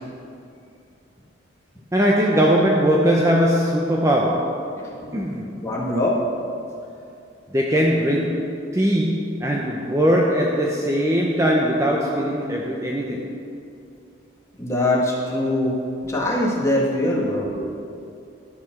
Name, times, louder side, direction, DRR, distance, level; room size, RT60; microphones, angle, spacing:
voice 1, 1.9-4.8 5.1-5.6 7.5-13.3, equal, 15° right, -1 dB, 0.7 m, -20 dB
voice 2, 5.6-6.2 14.6-15.7 16.0-17.7, left 1 dB, 15° left, -4 dB, 1.8 m, -22 dB
12.0 x 7.1 x 6.0 m, 2.6 s
head